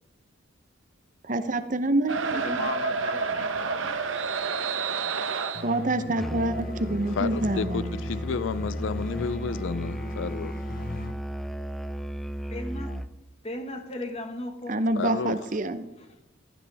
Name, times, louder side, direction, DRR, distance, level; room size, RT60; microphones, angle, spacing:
voice 1, 1.2-2.7 5.6-8.0 14.7-15.8, right 2 dB, 40° right, 0.8 m, -27 dB
sound 1, 2.1-5.8, right 4 dB, 75° right, 1.0 m, -29 dB
voice 2, 2.3-3.7 12.5-12.9 13.4-14.8, left 1 dB, 30° left, 1.5 m, -36 dB
sound 2, 5.6-11.1, left 2 dB, 45° left, 0.9 m, -39 dB
Musical instrument, 6.2-13.2, equal, ahead, 0.3 m, -34 dB
voice 3, 7.2-10.5 15.0-15.4, left 5 dB, 70° left, 0.4 m, -31 dB
15.5 x 13.0 x 3.5 m
head